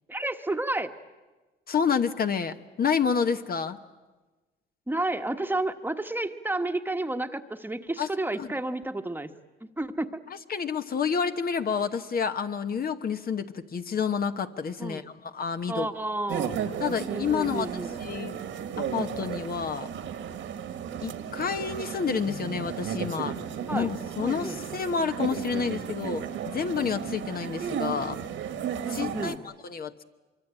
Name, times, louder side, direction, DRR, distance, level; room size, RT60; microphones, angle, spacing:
voice 1, 0.1-0.9 4.9-9.3 9.8-10.2 14.8-15.0 15.7-16.6 17.1-17.9 23.7-23.9 24.2-24.6 28.8-29.4, right 2 dB, 10° right, 7 dB, 1.3 m, -31 dB
voice 2, 1.7-3.8 8.0-8.1 8.4-8.5 10.5-15.9 16.8-17.7 18.0-18.4 18.8-19.9 21.0-23.4 23.7-28.2 28.9-30.0, left 6 dB, 50° left, 8 dB, 1.1 m, -29 dB
sound 1, 16.3-29.4, right 8 dB, 75° right, 2.0 m, -34 dB
24.0 x 24.0 x 8.9 m, 1.2 s
cardioid pair, 90°, 20 cm